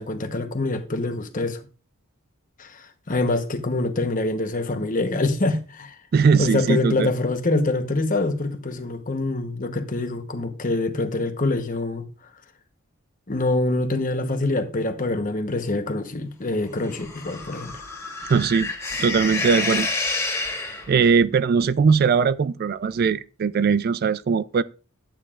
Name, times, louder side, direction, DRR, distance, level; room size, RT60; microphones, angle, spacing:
voice 1, 0.0-1.6 2.6-5.9 6.3-12.0 13.3-17.8, left 2 dB, 40° left, 1.0 m, -25 dB
voice 2, 6.1-7.1 18.3-18.7 19.0-19.9 20.9-24.6, right 5 dB, 45° right, 0.3 m, -20 dB
sound 1, 16.8-21.1, left 3 dB, 15° left, 2.0 m, -29 dB
11.5 x 8.8 x 2.4 m
head